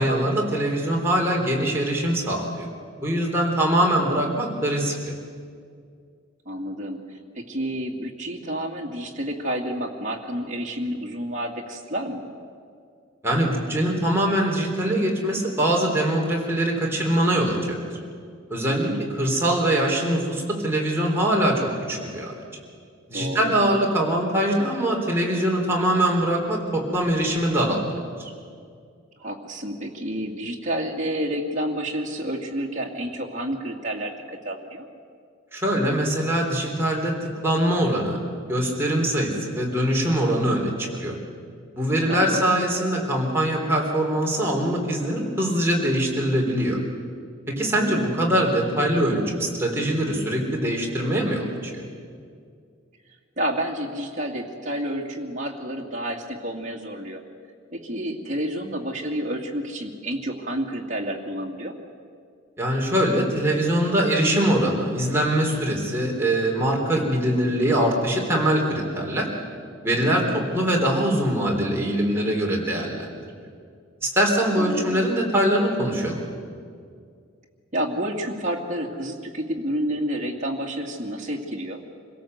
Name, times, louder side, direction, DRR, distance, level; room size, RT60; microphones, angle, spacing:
voice 1, 0.0-2.7 3.0-5.1 13.2-17.8 18.5-18.9 19.2-22.3 23.1-27.8 28.2-28.3 35.5-37.1 37.4-38.2 38.5-40.7 41.0-41.2 41.7-46.8 47.5-51.8 62.6-69.3 69.8-73.1 74.0-76.2, right 1 dB, 10° right, -2 dB, 3.7 m, -23 dB
voice 2, 6.5-7.0 7.3-12.2 18.7-19.0 23.1-23.6 29.2-34.8 42.1-42.4 47.6-48.0 53.4-57.2 57.7-61.7 70.1-70.4 74.6-75.1 77.7-81.8, right 1 dB, 40° right, 0 dB, 2.4 m, -30 dB
26.0 x 17.0 x 8.0 m, 2.2 s
head